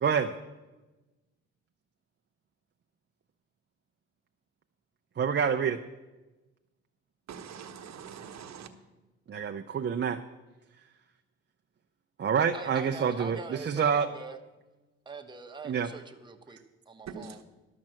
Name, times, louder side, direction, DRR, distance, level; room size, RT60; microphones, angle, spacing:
voice 1, 0.0-0.3 5.2-5.8 9.3-10.2 12.2-14.1 15.6-15.9, right 7 dB, 35° right, 0.6 m, -27 dB
voice 2, 7.3-8.7 17.1-17.4, right 7 dB, 60° right, 1.1 m, -43 dB
voice 3, 12.5-14.4 15.0-16.6 16.9-17.4, right 4 dB, 15° right, 1.0 m, -43 dB
12.0 x 6.1 x 7.6 m
cardioid pair, 90°, 30 cm